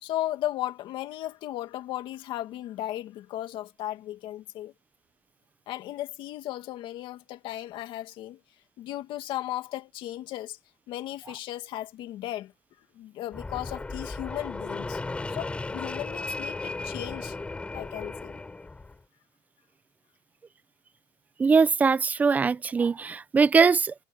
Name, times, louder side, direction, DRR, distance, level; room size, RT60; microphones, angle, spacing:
voice 1, 0.0-4.7 5.7-8.4 8.8-10.6 10.9-12.5 13.0-15.0 15.3-17.4 17.7-18.4, left 14 dB, 45° left, 2.2 m, -35 dB
Fixed-wing aircraft airplane, 13.3-19.0, left 3 dB, 10° left, 7.2 m, -35 dB
voice 2, 21.4-23.9, right 5 dB, 15° right, 0.5 m, -21 dB
cardioid pair, 165°, 12 cm